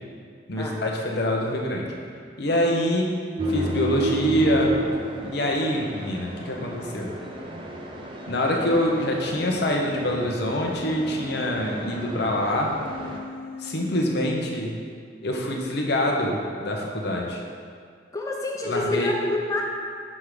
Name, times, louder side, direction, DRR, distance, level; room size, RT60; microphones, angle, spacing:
voice 1, 0.5-1.9 2.4-3.2 3.5-4.8 5.2-7.2 8.3-12.7 13.6-14.8 15.2-17.4 18.6-19.1, left 1 dB, 60° left, 0 dB, 0.8 m, -25 dB
sound 1, 3.4-13.2, right 1 dB, 30° right, 0.6 m, -32 dB
Human voice, 8.4-9.3 10.3-12.1 12.9-14.5, left 2 dB, 90° left, 0.5 m, -41 dB
voice 2, 18.1-19.6, left 2 dB, 20° left, -1 dB, 0.4 m, -27 dB
6.3 x 3.6 x 4.7 m, 2.1 s
head